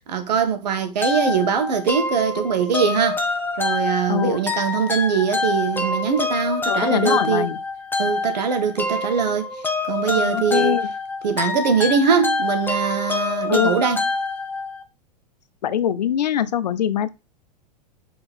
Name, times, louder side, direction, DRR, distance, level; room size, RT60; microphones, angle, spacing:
voice 1, 0.0-3.2 3.6-7.5 8.0-9.5 9.9-10.8 11.2-14.0, right 6 dB, 80° right, 1.6 m, -22 dB
sound 1, 1.0-14.8, left 3 dB, 10° left, 1.2 m, -26 dB
voice 2, 4.1-4.4 6.7-7.6 10.1-10.8 13.5-13.8 15.6-17.1, left 9 dB, 80° left, 0.8 m, -23 dB
5.1 x 4.8 x 6.2 m
hypercardioid pair, 110°, 21 cm